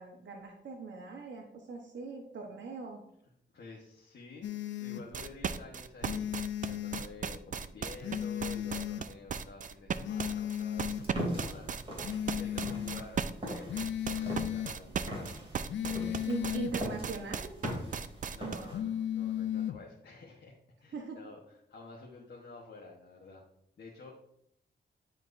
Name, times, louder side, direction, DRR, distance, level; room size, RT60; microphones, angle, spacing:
voice 1, 0.0-3.0 16.3-17.5 18.4-18.7 20.9-21.2, right 4 dB, 85° right, 1 dB, 1.0 m, -40 dB
voice 2, 3.5-6.4 6.7-15.3 15.8-16.6 18.3-23.4 23.8-24.1, left 3 dB, 65° left, -2 dB, 1.1 m, -50 dB
sound 1, 4.4-5.0 6.0-7.0 8.0-9.0 10.0-11.0 12.0-13.0 13.7-14.7 15.7-16.7 18.7-19.8, left 10 dB, 85° left, 0.4 m, -35 dB
sound 2, 5.1-18.7, right 6 dB, 45° right, 0.4 m, -36 dB
sound 3, 10.8-18.8, equal, 30° right, 2.8 m, -41 dB
11.0 x 4.4 x 2.6 m, 0.75 s
wide cardioid pair, 105°, 19 cm